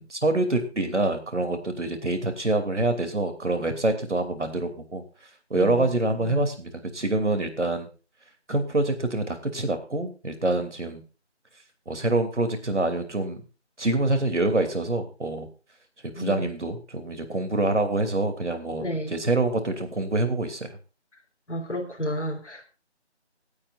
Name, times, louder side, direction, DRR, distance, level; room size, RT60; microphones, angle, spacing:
voice 1, 0.0-5.0 5.5-7.9 8.5-11.0 11.9-13.4 13.8-15.5 16.2-20.7, right 2 dB, 85° right, 7 dB, 3.0 m, -26 dB
voice 2, 5.5-5.9 6.1-6.4 16.1-16.4 18.8-19.1 21.5-22.6, equal, 80° left, -2 dB, 3.7 m, -32 dB
26.0 x 8.6 x 2.5 m, 0.32 s
figure-of-eight pair, 175°, 35 cm